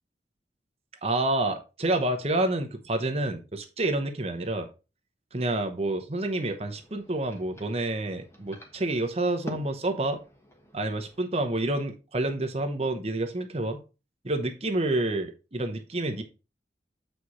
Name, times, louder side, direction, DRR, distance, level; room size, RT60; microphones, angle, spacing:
voice 1, 1.0-4.7 5.3-10.2 10.7-13.8 14.2-16.2, right 2 dB, 35° right, 6 dB, 0.9 m, -28 dB
sound 1, 6.1-11.2, equal, 15° left, 1.2 m, -47 dB
7.6 x 4.9 x 4.1 m, 0.30 s
head